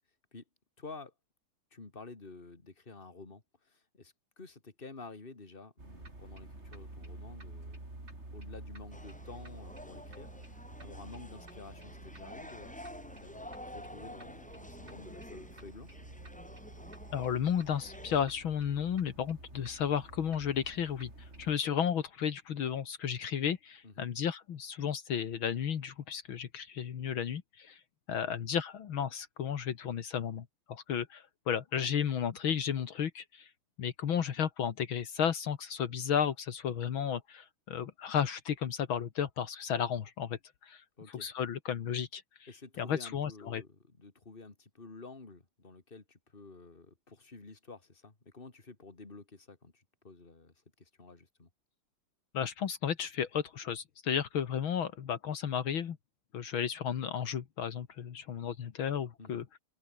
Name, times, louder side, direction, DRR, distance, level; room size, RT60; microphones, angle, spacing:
voice 1, 0.8-1.1 1.7-7.8 8.3-16.0 23.8-24.1 28.1-28.4 41.0-41.3 42.5-51.5 59.2-59.4, left 3 dB, 25° left, 3.0 m, -51 dB
sound 1, 5.8-21.5, right 2 dB, 30° right, 5.3 m, -50 dB
sound 2, 8.9-18.2, left 1 dB, 5° left, 0.8 m, -50 dB
voice 2, 17.1-27.8 28.1-33.5 33.8-40.8 41.2-42.5 42.8-43.6 52.3-56.0 56.3-59.4, left 8 dB, 70° left, 2.3 m, -33 dB
open air
omnidirectional pair, 2.3 m